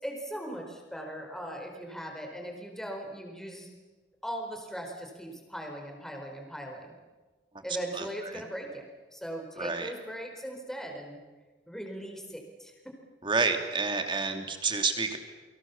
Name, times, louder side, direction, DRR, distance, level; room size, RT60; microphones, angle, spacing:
voice 1, 0.0-3.7 4.2-6.9 7.6-8.9 9.1-11.2 11.7-12.9, right 1 dB, 5° left, 2 dB, 4.6 m, -39 dB
voice 2, 9.6-9.9 13.2-15.2, right 4 dB, 25° right, 5 dB, 2.8 m, -29 dB
29.5 x 24.5 x 7.2 m, 1.3 s
head